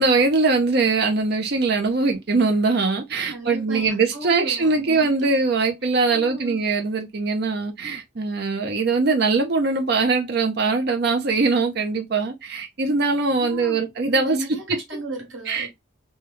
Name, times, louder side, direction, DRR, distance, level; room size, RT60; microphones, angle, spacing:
voice 1, 0.0-14.4 14.7-14.8 15.5-15.7, right 3 dB, 50° right, 0.5 m, -22 dB
voice 2, 3.3-5.4 5.8-6.6 13.4-15.7, right 1 dB, 70° right, 1.4 m, -35 dB
3.4 x 2.2 x 2.9 m
head